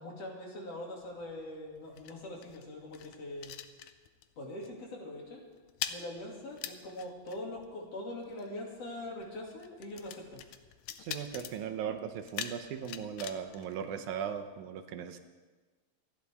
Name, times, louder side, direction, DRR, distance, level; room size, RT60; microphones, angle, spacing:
voice 1, 0.0-3.5 4.4-5.4 5.9-10.4, left 1 dB, 55° left, -1 dB, 3.5 m, -42 dB
sound 1, 1.0-4.4 4.6-4.9 5.2-14.6, left 10 dB, 90° left, 2.2 m, -45 dB
voice 2, 11.0-15.2, right 8 dB, 80° right, 7 dB, 2.3 m, -38 dB
27.0 x 11.5 x 3.5 m, 1.3 s
omnidirectional pair, 3.4 m